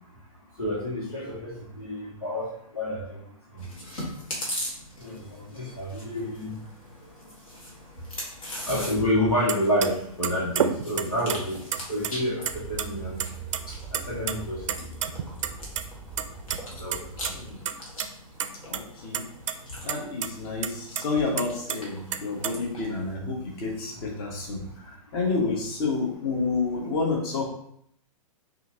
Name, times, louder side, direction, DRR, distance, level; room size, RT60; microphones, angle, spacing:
voice 1, 0.6-3.2 3.5-3.6 3.9-4.0 5.0-6.6 8.7-11.6 11.9-13.2 13.7-14.9 16.8-17.0, equal, 85° left, -6 dB, 1.5 m, -29 dB
Chewing mastication, 3.6-23.1, equal, 65° left, 1.6 m, -41 dB
sound 1, 9.5-9.6 9.8-9.9 10.2-11.4 11.7-12.5 12.8-12.9 13.2-13.6 13.9-14.3 14.7-15.8 16.2-16.6 16.9-17.0 17.2-17.3 17.7-18.1 18.4-18.8 19.1-19.5 19.9-20.0 20.2-20.3 20.6-21.8 22.1-22.5, right 9 dB, 55° right, 0.4 m, -28 dB
sound 2, 12.5-17.6, right 5 dB, ahead, 0.6 m, -41 dB
voice 2, 18.6-19.2 19.8-27.5, left 4 dB, 40° left, 0 dB, 1.1 m, -29 dB
5.5 x 2.7 x 2.8 m, 0.68 s
figure-of-eight pair, 115°, 19 cm